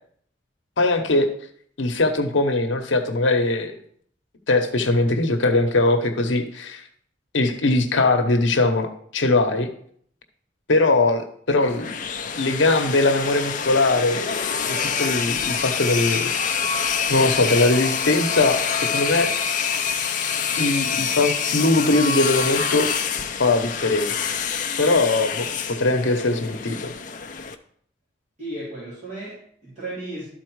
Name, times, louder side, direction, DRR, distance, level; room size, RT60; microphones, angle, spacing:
voice 1, 0.8-1.3 1.8-3.7 4.5-6.8 7.3-9.7 10.7-11.9 12.4-16.2 16.5-16.6 17.1-19.3 20.6-22.9 23.4-24.1 24.8-26.9, left 2 dB, 85° left, 6 dB, 0.9 m, -21 dB
sound 1, 11.6-27.5, left 6 dB, 45° left, 0.5 m, -26 dB
voice 2, 28.4-30.2, right 1 dB, 40° right, -11 dB, 3.5 m, -34 dB
12.0 x 4.2 x 4.6 m, 0.63 s
head